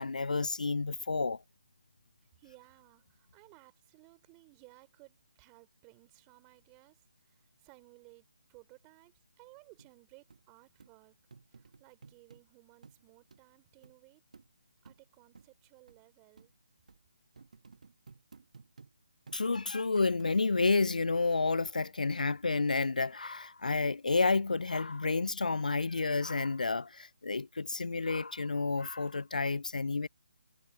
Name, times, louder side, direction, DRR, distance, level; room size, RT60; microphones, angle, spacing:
voice 1, 0.0-1.4 19.3-30.1, left 3 dB, 70° left, 0.6 m, -30 dB
voice 2, 2.4-11.2 11.5-14.2 14.8-16.5, right 34 dB, 20° right, 4.4 m, -59 dB
sound 1, 9.8-9.9 10.3-10.4 10.8-10.9 11.3-12.4 12.8-13.0 13.3-13.4 13.8-14.0 14.3-14.5 14.9-15.0 15.3-15.5 15.9-16.0 16.4-16.5 16.9-17.0 17.4-18.9 19.3-19.5 20.0-20.3 20.7-21.1 21.7-21.8, right 4 dB, 60° right, 1.8 m, -55 dB
figure-of-eight pair, 150°, 4 cm